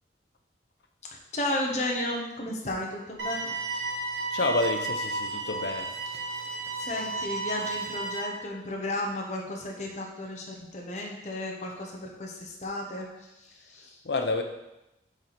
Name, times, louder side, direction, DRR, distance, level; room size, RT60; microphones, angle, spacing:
voice 1, 1.3-3.6 6.8-14.0, left 1 dB, 40° left, -1 dB, 0.9 m, -33 dB
sound 1, 3.2-8.2, right 2 dB, 85° right, 1.1 m, -33 dB
voice 2, 4.3-5.9 14.0-14.4, left 2 dB, 65° left, 5 dB, 0.7 m, -28 dB
4.8 x 3.9 x 5.8 m, 0.95 s
head